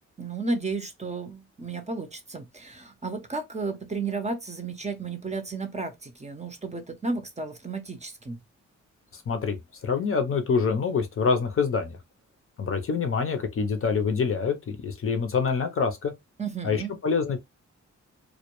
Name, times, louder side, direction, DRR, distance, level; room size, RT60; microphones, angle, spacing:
voice 1, 0.2-8.4 16.4-16.9, right 3 dB, 25° right, 0.6 m, -33 dB
voice 2, 9.1-9.6 9.8-12.0 12.6-16.1 16.6-17.4, left 5 dB, 45° left, 0.6 m, -26 dB
2.2 x 2.1 x 2.9 m
cardioid pair, 80°, 30 cm